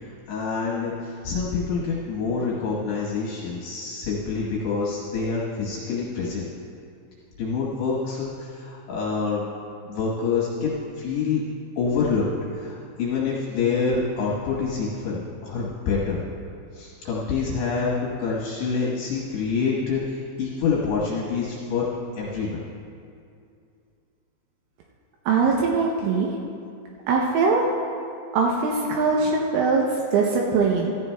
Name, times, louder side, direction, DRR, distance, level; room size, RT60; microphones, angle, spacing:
voice 1, 0.0-6.5 7.4-9.5 9.9-11.4 11.8-12.3 12.5-16.2 16.7-21.9 22.2-22.6, left 5 dB, 70° left, -5 dB, 2.7 m, -26 dB
voice 2, 25.3-26.4 27.1-27.7 28.3-30.9, right 4 dB, 80° right, -1 dB, 3.1 m, -21 dB
16.5 x 14.0 x 2.2 m, 2.5 s
omnidirectional pair, 5.9 m